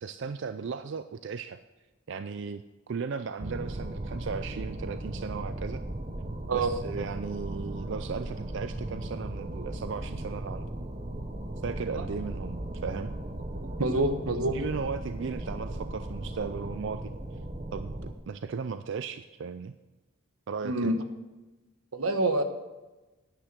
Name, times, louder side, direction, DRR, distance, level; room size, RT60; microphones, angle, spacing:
voice 1, 0.0-1.6 2.1-2.6 2.9-5.8 6.5-10.7 11.6-13.1 14.5-17.1 17.7-19.7 20.5-20.9, right 5 dB, 55° right, 10 dB, 0.4 m, -36 dB
sound 1, 3.4-18.1, right 1 dB, 30° right, 0.8 m, -37 dB
voice 2, 13.8-14.6 20.6-21.0 21.9-22.4, right 2 dB, 85° right, 8 dB, 1.1 m, -26 dB
9.9 x 9.2 x 6.0 m, 1.1 s
head